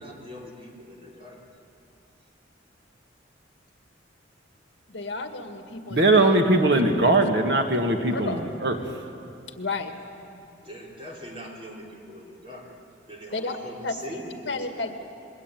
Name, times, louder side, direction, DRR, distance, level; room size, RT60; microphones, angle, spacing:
voice 1, 0.0-1.4 5.9-6.0 10.2-12.8 13.1-14.9, equal, 30° right, -2 dB, 4.1 m, -42 dB
voice 2, 4.9-6.3 7.2-7.3 8.1-8.4 9.5-9.9 13.3-13.6 13.8-14.9, left 3 dB, 65° left, 6 dB, 1.9 m, -32 dB
voice 3, 5.9-9.0, right 2 dB, 60° right, 4 dB, 1.8 m, -21 dB
26.5 x 22.0 x 9.3 m, 2.6 s
head